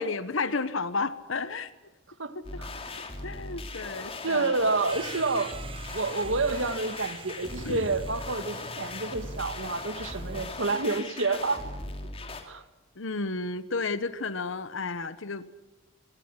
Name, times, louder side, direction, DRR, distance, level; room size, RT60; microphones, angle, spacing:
voice 1, 0.0-1.7 3.2-4.5 7.6-7.9 13.0-15.6, left 4 dB, 80° left, 13 dB, 1.1 m, -32 dB
voice 2, 2.2-2.7 4.1-5.6 5.9-11.7 12.5-12.6, right 3 dB, 75° right, 11 dB, 1.8 m, -29 dB
sound 1, 2.4-12.4, left 2 dB, 30° left, 3.1 m, -39 dB
sound 2, 4.9-10.5, right 3 dB, 25° right, 1.8 m, -45 dB
25.5 x 19.5 x 9.8 m, 1.1 s
head